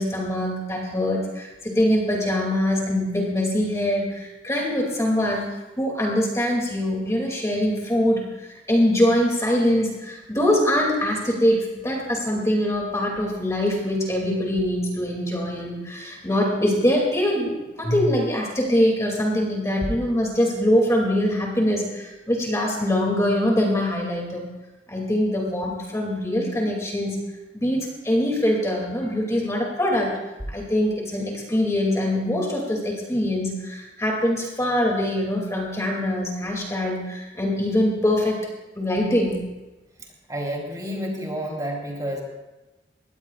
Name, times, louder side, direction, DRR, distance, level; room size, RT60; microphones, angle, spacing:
voice 1, 0.0-17.5 17.8-24.5 24.9-27.2 27.5-30.1 30.5-38.5 38.8-39.4, left 1 dB, 15° left, -1 dB, 2.5 m, -23 dB
voice 2, 40.3-42.2, equal, 20° right, -1 dB, 3.4 m, -29 dB
22.0 x 18.0 x 2.4 m, 1.1 s
head